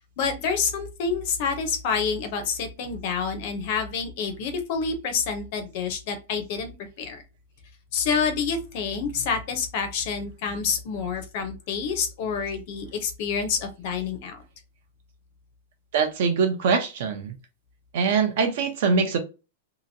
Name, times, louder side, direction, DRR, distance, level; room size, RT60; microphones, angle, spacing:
voice 1, 0.2-6.7 7.0-7.2 7.9-14.4, left 5 dB, 40° left, 0.6 m, -28 dB
voice 2, 15.9-17.4 17.9-19.2, right 5 dB, 50° right, 0.6 m, -23 dB
2.9 x 2.5 x 2.6 m
supercardioid pair, 175°, 0 cm